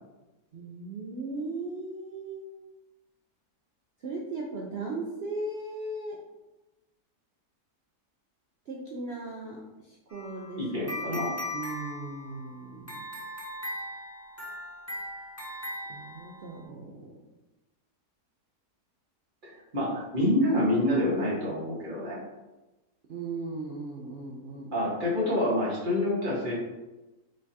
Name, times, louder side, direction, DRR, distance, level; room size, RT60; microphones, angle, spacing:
voice 1, 0.5-2.5 4.0-6.2 8.7-11.2 11.5-13.1 15.9-17.2 23.1-24.7, right 3 dB, 65° right, -1 dB, 0.6 m, -38 dB
sound 1, 10.1-16.6, left 1 dB, 15° left, 0.6 m, -39 dB
voice 2, 10.6-11.3 19.4-22.2 24.7-26.5, left 1 dB, 30° right, -6 dB, 1.5 m, -27 dB
5.3 x 3.5 x 2.7 m, 1.1 s
omnidirectional pair, 1.7 m